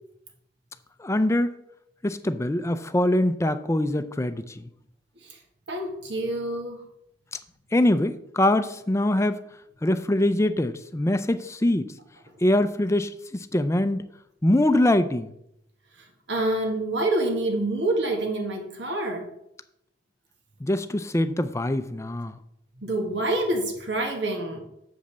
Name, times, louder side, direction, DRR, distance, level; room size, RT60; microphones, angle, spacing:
voice 1, 1.0-1.5 2.0-4.6 7.7-9.4 9.8-11.9 12.4-14.1 14.4-15.3 20.6-22.4, left 1 dB, 15° left, 11 dB, 0.5 m, -23 dB
voice 2, 5.7-6.8 16.3-19.3 22.8-24.6, right 1 dB, 75° right, 3 dB, 1.8 m, -27 dB
7.0 x 5.2 x 6.8 m, 0.78 s
head